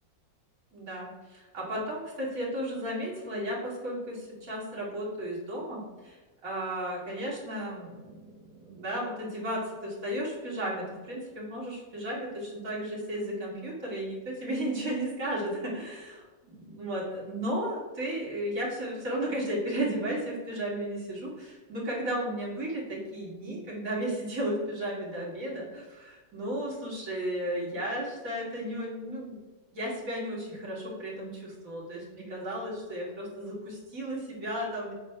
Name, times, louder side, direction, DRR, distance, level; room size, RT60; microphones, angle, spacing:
voice 1, 0.7-16.1 16.4-29.4 29.7-34.9, right 1 dB, 50° right, -5 dB, 2.0 m, -34 dB
7.2 x 2.7 x 5.6 m, 1.3 s
omnidirectional pair, 2.0 m